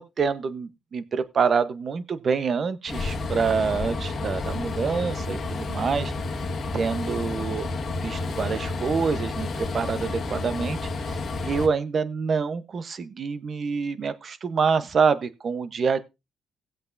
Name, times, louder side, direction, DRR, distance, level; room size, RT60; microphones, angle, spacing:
voice 1, 0.0-6.1 6.7-7.7 8.0-16.0, right 5 dB, 50° right, 1.0 m, -26 dB
Train, 2.9-11.7, left 3 dB, 50° left, 1.5 m, -30 dB
18.0 x 8.0 x 2.6 m
cardioid pair, 90°, 0 cm